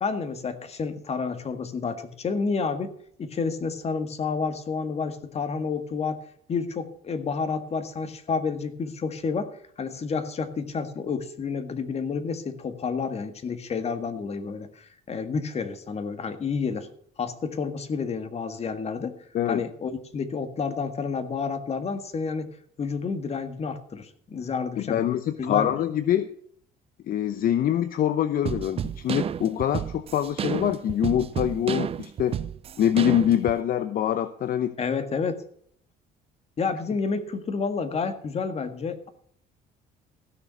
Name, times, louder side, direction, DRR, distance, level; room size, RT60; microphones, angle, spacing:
voice 1, 0.0-2.9 3.2-6.2 6.5-16.9 17.2-19.2 19.5-22.5 22.8-25.1 25.4-25.7 34.8-35.4 36.6-39.1, left 5 dB, 40° left, 8 dB, 1.8 m, -30 dB
voice 2, 24.8-26.3 27.1-32.4 32.8-34.7, left 10 dB, 55° left, 11 dB, 0.8 m, -24 dB
sound 1, 28.4-33.6, right 9 dB, 35° right, 0.4 m, -31 dB
15.5 x 6.8 x 6.0 m, 0.62 s
cardioid pair, 110°, 17 cm